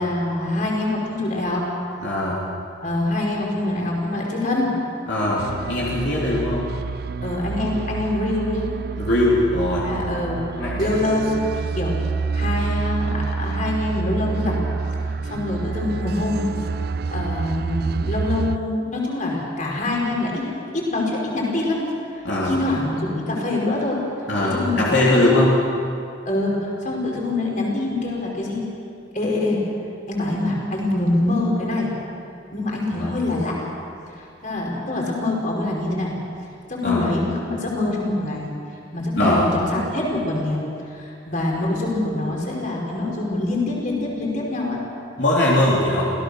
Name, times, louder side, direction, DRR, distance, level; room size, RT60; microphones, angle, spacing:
voice 1, 0.0-1.6 2.8-4.7 7.2-8.7 9.8-12.0 12.3-14.6 15.0-21.8 22.1-24.0 24.4-24.9 25.2-25.4 26.3-28.7 29.1-29.6 30.1-31.9 32.5-33.6 34.1-36.1 36.7-38.5 38.9-40.6 40.9-44.8, left 2 dB, 40° left, -2 dB, 5.0 m, -25 dB
voice 2, 2.0-2.4 5.1-6.7 9.0-9.8 10.6-10.9 22.2-22.5 24.3-25.5 32.9-33.1 36.8-37.1 39.1-39.5 45.2-46.1, left 1 dB, 65° left, -6 dB, 3.4 m, -20 dB
sound 1, 5.4-18.6, right 4 dB, 55° right, 0.4 m, -28 dB
27.0 x 17.0 x 6.5 m, 2.5 s
head